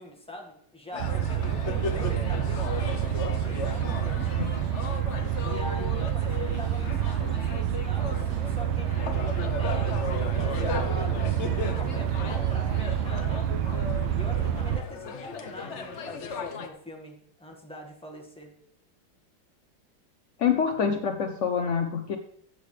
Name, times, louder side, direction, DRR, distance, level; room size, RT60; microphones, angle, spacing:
voice 1, 0.0-3.0 3.4-4.3 5.4-8.9 9.5-13.5 14.1-18.5, left 1 dB, 5° left, 1 dB, 1.5 m, -43 dB
sound 1, 0.9-16.7, left 5 dB, 50° left, 0.9 m, -36 dB
sound 2, 1.0-14.8, right 10 dB, 80° right, 1.4 m, -28 dB
voice 2, 20.4-22.2, left 7 dB, 75° left, 7 dB, 0.6 m, -26 dB
14.0 x 8.2 x 3.3 m, 0.67 s
omnidirectional pair, 2.2 m